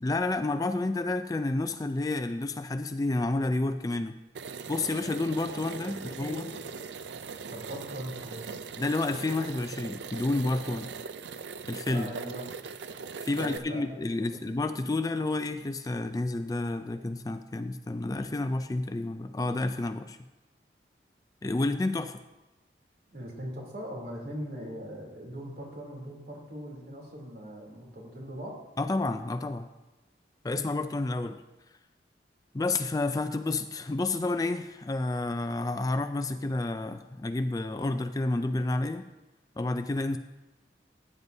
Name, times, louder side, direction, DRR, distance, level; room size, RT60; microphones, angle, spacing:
voice 1, 0.0-4.2 4.7-6.5 8.8-10.9 11.7-12.1 13.2-20.2 21.4-22.2 28.8-29.7 30.4-31.4 32.5-39.1 39.6-40.2, left 2 dB, 20° left, 9 dB, 0.3 m, -30 dB
sound 1, 4.3-13.6, right 5 dB, 85° right, 0.5 m, -40 dB
voice 2, 6.2-6.6 7.5-8.5 11.9-12.4 13.3-14.5 23.1-28.6, equal, 60° right, -1 dB, 3.1 m, -40 dB
16.0 x 9.5 x 2.7 m, 1.1 s
head